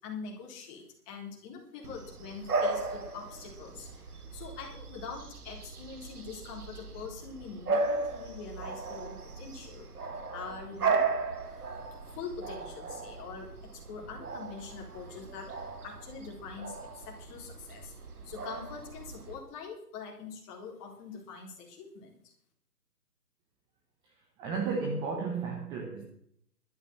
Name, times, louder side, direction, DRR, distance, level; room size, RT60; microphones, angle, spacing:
voice 1, 0.0-9.9 10.3-11.0 11.4-18.0 18.2-22.3, left 5 dB, 20° left, 0 dB, 3.8 m, -44 dB
Bark / Bird vocalization bird call bird song, 1.8-19.4, right 4 dB, 70° right, 2.4 m, -36 dB
voice 2, 24.4-26.0, right 4 dB, 10° right, 1 dB, 1.0 m, -33 dB
12.5 x 8.9 x 7.8 m, 0.65 s
figure-of-eight pair, 145°, 47 cm